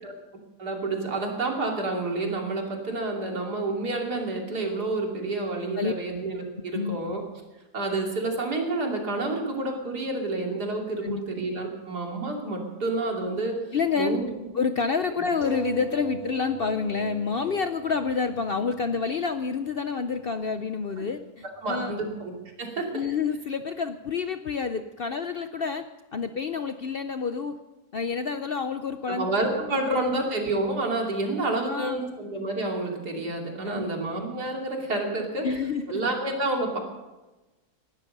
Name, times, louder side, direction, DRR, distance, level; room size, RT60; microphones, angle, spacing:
voice 1, 0.6-7.2 7.7-13.6 14.0-14.4 15.1-15.2 21.6-22.3 22.6-23.0 29.1-35.5 35.9-36.8, right 2 dB, 85° right, 0 dB, 3.3 m, -29 dB
voice 2, 13.7-14.2 14.5-22.0 22.9-27.6 27.9-29.3 29.6-30.2 31.7-32.0 33.6-34.3 35.4-36.0, left 5 dB, 60° left, 9 dB, 0.6 m, -29 dB
sound 1, 15.4-20.4 21.2-21.3 21.6-21.7, right 3 dB, 35° left, 2.7 m, -40 dB
18.5 x 12.5 x 5.3 m, 1.1 s
omnidirectional pair, 1.7 m